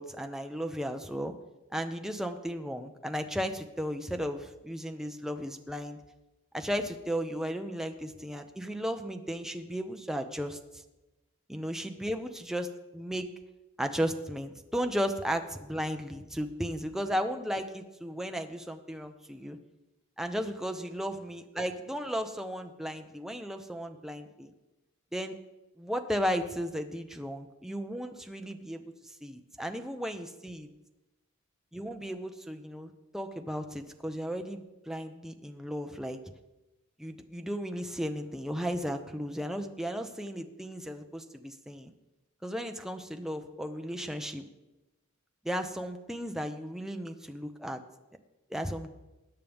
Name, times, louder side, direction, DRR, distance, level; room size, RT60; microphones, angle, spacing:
voice 1, 0.0-1.3 1.7-6.0 6.5-10.6 11.5-12.7 12.9-13.3 13.8-19.6 20.2-24.5 25.1-25.4 25.8-30.7 31.7-36.2 37.0-41.9 42.4-44.5 45.4-47.8 48.5-49.0, equal, ahead, 5 dB, 0.8 m, -35 dB
21.0 x 9.3 x 3.6 m, 1.0 s
head